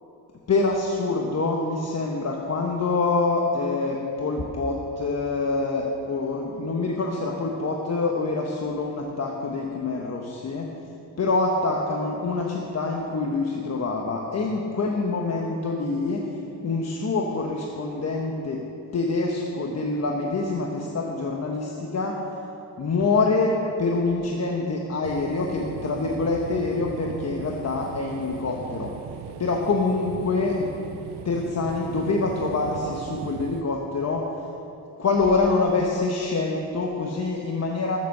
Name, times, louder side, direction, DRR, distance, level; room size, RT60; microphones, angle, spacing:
voice 1, 0.5-10.7 11.2-16.4 16.6-18.6 18.9-22.2 22.8-28.9 29.4-30.7 31.2-34.3 35.0-38.0, left 3 dB, 40° left, 0 dB, 1.2 m, -25 dB
sound 1, 25.0-33.6, right 9 dB, 85° right, 0.7 m, -38 dB
14.0 x 7.4 x 6.5 m, 2.9 s
cardioid pair, 105°, 39 cm